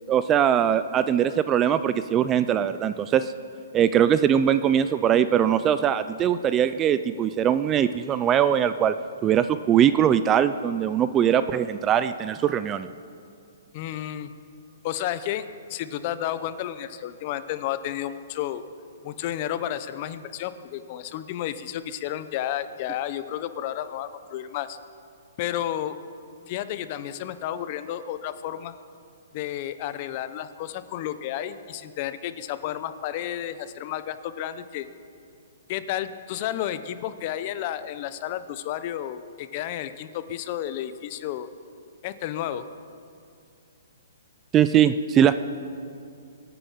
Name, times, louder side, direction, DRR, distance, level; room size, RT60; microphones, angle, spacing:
voice 1, 0.1-3.3 3.7-8.9 9.2-12.9 44.5-45.3, right 9 dB, 15° right, 12 dB, 0.3 m, -21 dB
voice 2, 13.7-14.3 14.8-18.6 19.0-24.8 25.4-25.9 26.5-28.7 29.3-34.9 35.7-41.5 42.0-42.7, left 11 dB, 35° left, 12 dB, 0.7 m, -32 dB
23.5 x 9.1 x 5.7 m, 2.4 s
hypercardioid pair, 165°, 0 cm